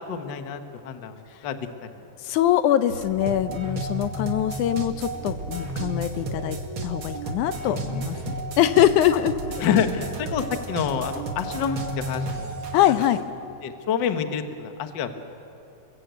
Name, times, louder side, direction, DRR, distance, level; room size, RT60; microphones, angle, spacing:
voice 1, 0.1-1.6 9.6-12.5 13.6-15.3, left 7 dB, 50° left, 7 dB, 1.4 m, -28 dB
voice 2, 2.2-6.6 6.8-9.4 12.7-13.2, left 12 dB, 75° left, 11 dB, 2.1 m, -23 dB
sound 1, 2.9-13.2, right 2 dB, 45° right, 2.6 m, -32 dB
29.0 x 21.5 x 8.2 m, 2.7 s
omnidirectional pair, 3.7 m